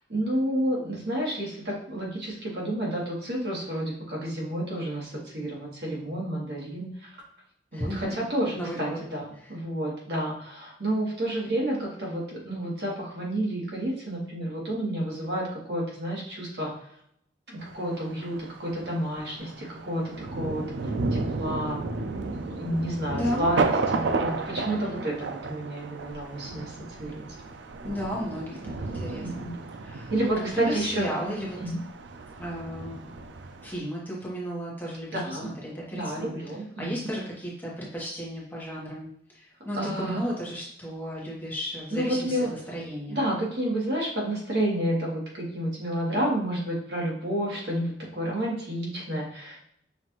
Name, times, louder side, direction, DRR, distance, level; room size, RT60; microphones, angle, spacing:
voice 1, 0.1-7.2 7.7-16.7 17.5-20.6 21.1-21.8 22.2-27.2 29.2-29.5 30.1-31.1 31.6-31.8 35.1-35.5 35.9-37.1 39.8-40.2 41.9-42.5 43.1-49.6, right 1 dB, 65° right, -4 dB, 1.5 m, -30 dB
voice 2, 7.7-8.3 8.5-9.0 9.3-9.5 23.1-23.5 24.6-25.0 27.8-29.5 29.8-31.6 32.4-33.1 33.6-36.3 36.8-43.2, equal, 10° left, -5 dB, 1.0 m, -34 dB
Thunder, 17.6-33.8, right 3 dB, 90° right, 0.4 m, -33 dB
5.8 x 2.5 x 3.0 m, 0.72 s
head